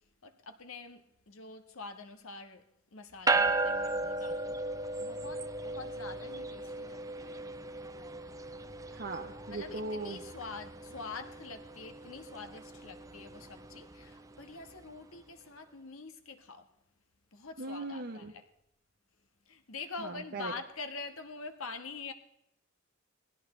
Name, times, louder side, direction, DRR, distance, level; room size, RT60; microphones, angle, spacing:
voice 1, 0.0-4.6 5.0-7.6 9.5-16.7 17.3-18.4 19.5-22.1, left 4 dB, 75° left, 1.3 m, -45 dB
sound 1, 3.3-14.8, right 2 dB, 15° right, 0.6 m, -36 dB
voice 2, 8.9-10.2 17.6-18.3 20.0-20.5, right 2 dB, 55° right, 0.9 m, -39 dB
20.0 x 16.5 x 3.2 m
head